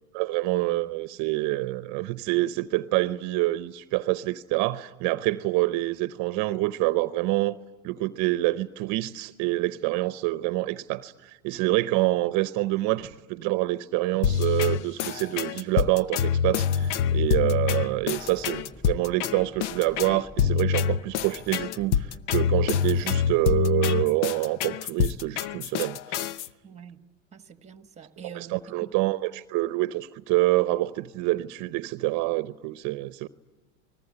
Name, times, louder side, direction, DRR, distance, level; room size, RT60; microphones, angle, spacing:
voice 1, 0.0-7.6 7.8-26.2 28.3-33.3, right 18 dB, 55° right, 0.8 m, -27 dB
sound 1, 14.2-26.5, left 8 dB, 75° left, 0.8 m, -26 dB
sound 2, 16.5-23.4, equal, 20° left, 5.5 m, -49 dB
voice 2, 26.6-27.0 27.3-28.9, right 7 dB, 20° right, 1.4 m, -46 dB
29.0 x 20.5 x 9.7 m
supercardioid pair, 110°, 35 cm